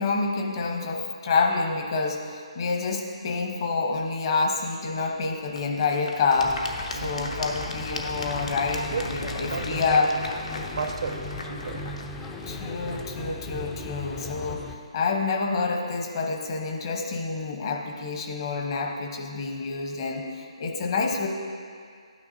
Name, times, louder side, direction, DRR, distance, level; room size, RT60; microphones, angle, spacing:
voice 1, 0.0-6.6 6.9-10.1 12.5-21.3, left 4 dB, 45° left, 1.0 m, -27 dB
Applause / Crowd, 4.8-13.9, left 2 dB, 70° left, 0.9 m, -38 dB
sound 1, 6.4-14.8, left 2 dB, 10° left, 0.4 m, -37 dB
voice 2, 7.0-7.5 8.9-10.3 10.7-12.0 13.7-14.1, right 5 dB, 60° right, 0.5 m, -35 dB
11.0 x 9.4 x 2.7 m
hypercardioid pair, 155°, 3 cm